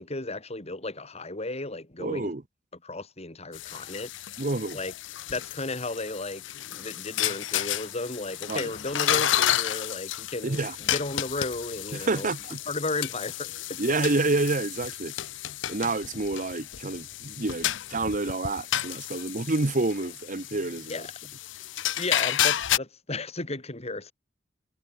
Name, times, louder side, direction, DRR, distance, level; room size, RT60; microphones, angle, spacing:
voice 1, 0.0-2.3 2.8-4.1 4.7-4.9 5.3-6.4 6.7-12.3 12.7-13.8 20.9-21.1 22.0-24.1, left 2 dB, 35° left, 3.6 m, -34 dB
voice 2, 2.0-2.4 4.4-4.8 8.5-8.7 10.4-10.8 11.9-12.6 13.8-15.1 15.7-21.0, right 2 dB, 45° right, 1.1 m, -28 dB
sound 1, 3.5-22.8, left 11 dB, 80° left, 0.7 m, -31 dB
head